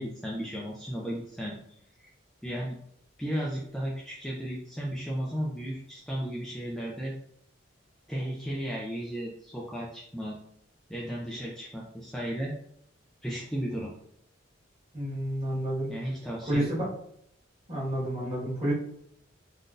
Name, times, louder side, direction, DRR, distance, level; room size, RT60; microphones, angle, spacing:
voice 1, 0.0-1.6 2.4-2.8 3.2-7.2 8.1-10.4 10.9-12.5 13.2-13.9 15.9-16.9, equal, 5° left, -4 dB, 0.3 m, -34 dB
voice 2, 14.9-15.9 16.5-16.8 17.7-18.7, right 1 dB, 30° right, -7 dB, 1.4 m, -29 dB
3.7 x 2.5 x 2.5 m, 0.70 s
head